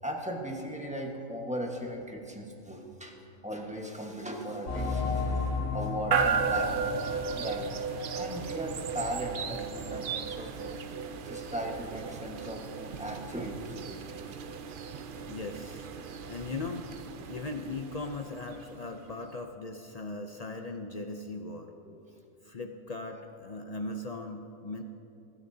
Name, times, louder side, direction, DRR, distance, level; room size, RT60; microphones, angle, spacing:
voice 1, 0.0-3.2 3.4-7.0 7.3-10.8 11.2-14.1 17.2-17.3 21.8-22.0, equal, 5° right, 0 dB, 1.2 m, -38 dB
sound 1, 4.7-8.9 9.3-9.4 9.9-10.0, left 3 dB, 90° left, 2.3 m, -34 dB
sound 2, 6.1-19.1, right 5 dB, 60° right, 0.5 m, -35 dB
voice 2, 15.3-15.9 16.3-16.9 17.3-21.7 22.4-24.8, left 3 dB, 65° left, 4 dB, 0.3 m, -38 dB
21.5 x 13.0 x 2.8 m, 2.8 s
omnidirectional pair, 1.6 m